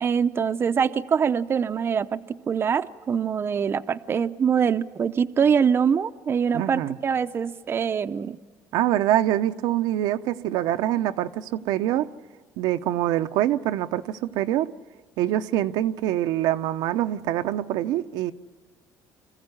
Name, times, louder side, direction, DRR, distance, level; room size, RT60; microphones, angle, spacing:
voice 1, 0.0-8.4, right 7 dB, 35° right, 0.7 m, -24 dB
voice 2, 6.5-7.0 8.7-12.1 12.6-14.7 15.2-18.3, right 13 dB, 80° right, 0.8 m, -25 dB
26.5 x 15.0 x 9.7 m
cardioid pair, 110°, 7 cm